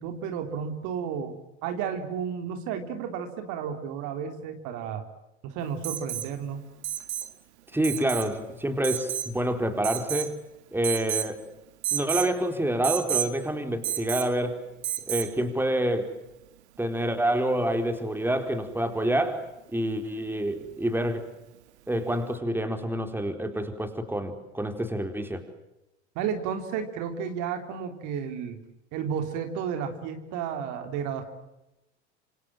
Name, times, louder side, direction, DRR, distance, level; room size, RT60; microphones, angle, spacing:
voice 1, 0.0-5.0 5.4-6.7 26.2-28.6 28.9-31.2, right 7 dB, 60° right, 7 dB, 3.5 m, -32 dB
Alarm, 5.8-6.3 6.8-7.3 7.8-8.3 8.8-9.3 9.8-10.4 10.8-11.3 11.8-12.3 12.8-13.3 13.8-14.3 14.8-15.3 17.1-17.2, right 12 dB, 75° right, 1.9 m, -31 dB
voice 2, 7.7-10.4 10.7-11.4 11.9-14.6 15.1-16.1 16.8-21.3 21.9-25.4, right 1 dB, 5° right, 7 dB, 4.3 m, -27 dB
27.5 x 27.0 x 7.5 m, 0.92 s
hypercardioid pair, 80°, 34 cm